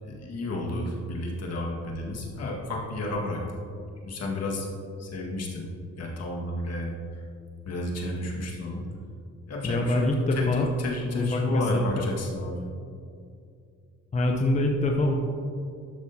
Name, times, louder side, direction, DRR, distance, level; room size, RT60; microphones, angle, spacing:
voice 1, 0.0-3.6 4.0-4.7 5.0-5.7 6.0-7.2 7.7-8.8 9.5-12.6, left 2 dB, 55° left, -2 dB, 1.8 m, -31 dB
voice 2, 9.6-10.7 11.1-11.8 14.1-15.1, left 2 dB, 25° left, 1 dB, 0.7 m, -25 dB
11.5 x 6.3 x 2.8 m, 2.4 s
cardioid pair, 90°, 30 cm